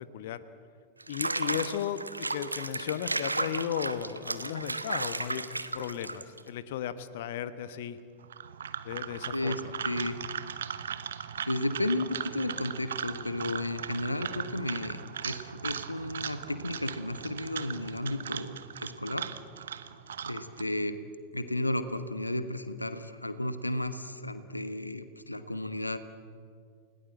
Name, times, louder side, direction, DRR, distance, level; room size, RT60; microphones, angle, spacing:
Water / Bathtub (filling or washing), 1.0-6.5, right 2 dB, 85° right, 1.1 m, -34 dB
voice 1, 1.1-5.5 5.7-8.0 8.8-9.7, left 10 dB, 55° left, 12 dB, 1.1 m, -35 dB
sound 1, 8.2-20.6, right 8 dB, 65° right, 1.1 m, -38 dB
voice 2, 9.3-10.2 11.4-19.3 20.2-21.0 21.3-26.0, left 1 dB, 85° left, 11 dB, 1.2 m, -33 dB
29.5 x 19.5 x 7.8 m, 2.2 s
figure-of-eight pair, 90°, 0 cm